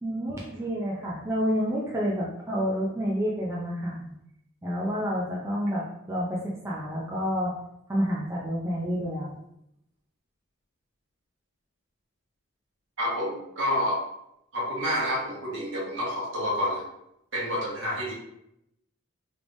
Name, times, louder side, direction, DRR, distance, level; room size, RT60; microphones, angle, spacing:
voice 1, 0.0-4.1 4.6-7.5 7.9-9.4, equal, 15° right, -5 dB, 0.4 m, -29 dB
voice 2, 13.0-14.0 14.5-16.9 17.3-18.1, equal, 60° right, -6 dB, 1.4 m, -28 dB
3.4 x 3.3 x 2.5 m, 0.79 s
head